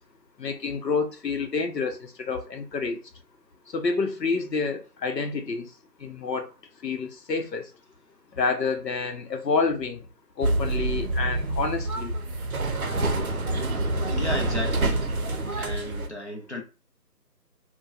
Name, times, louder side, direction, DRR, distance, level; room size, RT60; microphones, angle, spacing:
voice 1, 0.4-3.0 3.7-5.7 6.0-7.7 8.3-10.1 10.4-12.2, left 4 dB, 75° left, 0.8 m, -28 dB
sound 1, 10.4-16.1, right 2 dB, 60° right, 0.6 m, -27 dB
voice 2, 14.1-15.1 15.6-16.6, left 1 dB, 45° left, 0.6 m, -33 dB
2.9 x 2.2 x 2.4 m
figure-of-eight pair, 170°, 50 cm